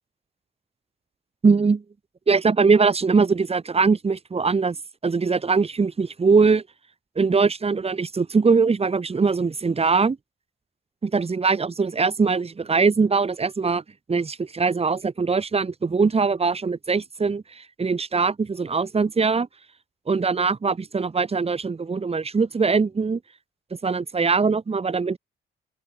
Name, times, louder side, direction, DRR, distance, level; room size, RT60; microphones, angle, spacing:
voice 1, 1.4-1.8 2.3-4.8 5.0-6.6 7.1-10.2 11.0-13.8 14.1-19.5 20.1-23.2 23.8-25.2, right 4 dB, 30° right, 3.3 m, -21 dB
open air
cardioid pair, 90°, 20 cm